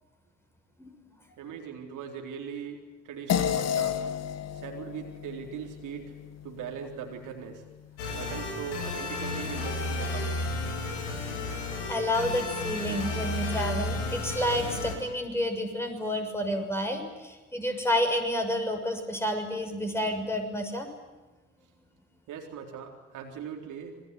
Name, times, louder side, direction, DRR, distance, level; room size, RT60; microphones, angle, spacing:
voice 1, 0.8-1.1 11.2-11.3 11.9-20.9, left 1 dB, 5° left, 4 dB, 6.4 m, -30 dB
voice 2, 1.4-2.8 3.0-4.0 4.5-6.2 6.4-7.6 8.1-10.5 22.3-24.0, right 7 dB, 55° right, 3 dB, 4.0 m, -40 dB
sound 1, 3.3-8.0, left 9 dB, 40° left, 1.7 m, -33 dB
sound 2, 8.0-14.9, left 2 dB, 70° left, 5.3 m, -32 dB
27.0 x 22.5 x 9.7 m, 1.1 s
figure-of-eight pair, 55°, 38 cm